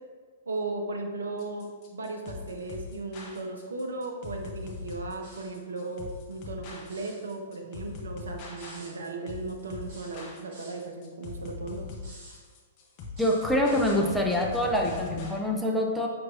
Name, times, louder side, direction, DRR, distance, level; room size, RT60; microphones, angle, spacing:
voice 1, 0.5-11.9, right 3 dB, 75° right, 3 dB, 0.6 m, -36 dB
sound 1, 1.4-15.4, left 4 dB, 40° left, 0.8 m, -41 dB
sound 2, 5.2-5.6 6.8-7.2 8.6-8.9 9.9-10.8 12.0-12.4 13.1-14.0, right 1 dB, 50° right, 1.4 m, -50 dB
voice 2, 13.2-16.1, left 1 dB, ahead, -2 dB, 0.5 m, -25 dB
5.9 x 3.0 x 2.5 m, 1.5 s
figure-of-eight pair, 110°, 0 cm